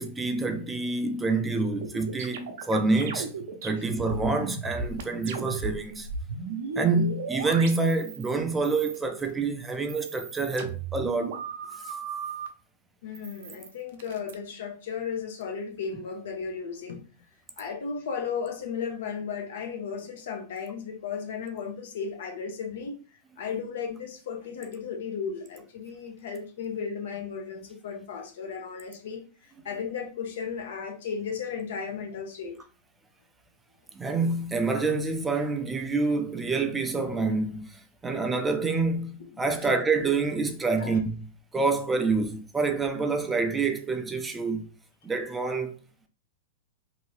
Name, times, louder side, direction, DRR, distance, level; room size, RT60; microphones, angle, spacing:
voice 1, 0.0-3.3 3.6-6.1 6.8-11.4 11.8-11.9 33.9-41.2 41.5-44.7 45.0-45.8, right 3 dB, 10° right, 0.5 m, -27 dB
sound 1, 1.8-5.8 6.0-8.3 8.6-9.3 9.7-12.5 13.1-14.3, right 5 dB, 65° right, 0.7 m, -36 dB
voice 2, 13.0-17.0 17.6-32.6 39.3-39.7 40.8-41.0, left 6 dB, 70° left, 0.8 m, -35 dB
2.8 x 2.6 x 3.2 m
hypercardioid pair, 125°, 0 cm